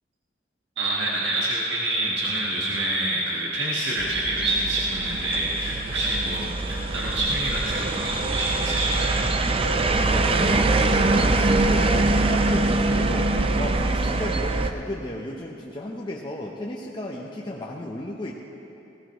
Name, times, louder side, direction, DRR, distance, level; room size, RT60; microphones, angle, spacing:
voice 1, 0.8-9.3, right 1 dB, 75° right, -5 dB, 1.5 m, -26 dB
sound 1, 4.0-14.7, right 2 dB, 30° right, 0.5 m, -23 dB
voice 2, 10.0-18.3, left 1 dB, 25° left, -3 dB, 0.8 m, -34 dB
19.0 x 16.5 x 3.1 m, 2.9 s
head